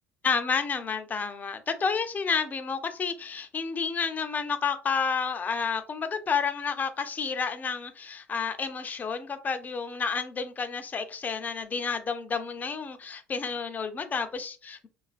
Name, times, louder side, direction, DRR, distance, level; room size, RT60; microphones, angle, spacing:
voice 1, 0.2-14.9, left 5 dB, 30° left, 0.5 m, -30 dB
2.8 x 2.4 x 2.4 m
hypercardioid pair, 75°, 6 cm